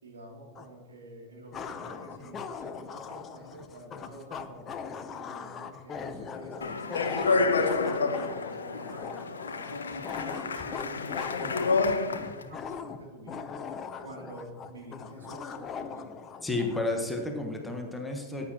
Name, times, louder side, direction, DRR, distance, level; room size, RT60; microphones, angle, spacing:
voice 1, 0.0-4.7 5.1-9.8 10.2-13.5 14.0-16.1, right 1 dB, 70° right, -2 dB, 3.0 m, -48 dB
sound 1, 0.5-0.7 1.5-16.9, left 6 dB, 25° left, 0.7 m, -40 dB
Speech, 6.6-12.4, left 4 dB, 70° left, 0.7 m, -29 dB
voice 2, 16.4-18.5, left 2 dB, 10° left, 2 dB, 1.4 m, -31 dB
14.0 x 9.6 x 3.0 m, 1.2 s
figure-of-eight pair, 90°, 0 cm